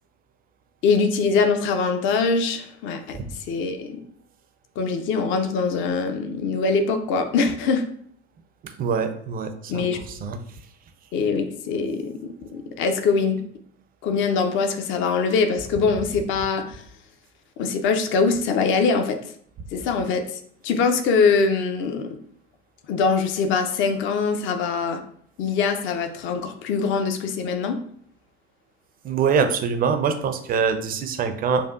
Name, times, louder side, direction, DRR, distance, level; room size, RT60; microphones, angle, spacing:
voice 1, 0.8-4.0 4.8-7.8 9.7-10.0 11.1-13.4 14.0-16.8 17.6-19.2 19.7-22.2 22.9-25.0 25.4-27.8, left 4 dB, 40° left, 6 dB, 0.6 m, -23 dB
voice 2, 8.8-10.4 29.0-31.7, right 6 dB, 25° right, 7 dB, 0.5 m, -24 dB
6.7 x 2.4 x 2.4 m, 0.63 s
figure-of-eight pair, 75°, 33 cm